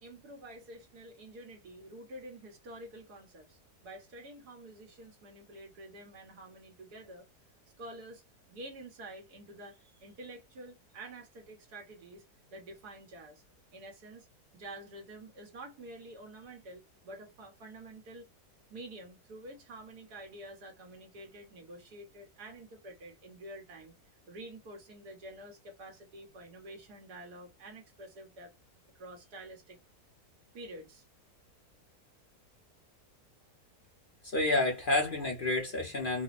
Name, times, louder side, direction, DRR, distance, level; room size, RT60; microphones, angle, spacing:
voice 1, 0.0-7.3 7.8-8.2 8.5-12.2 12.5-13.4 13.7-14.3 14.5-18.3 18.7-24.0 24.3-28.5 29.0-29.8 30.5-31.0 34.8-34.9, right 1 dB, 85° right, 1.8 m, -48 dB
voice 2, 34.2-36.2, left 2 dB, 45° left, 0.8 m, -29 dB
4.6 x 2.1 x 2.5 m
omnidirectional pair, 1.7 m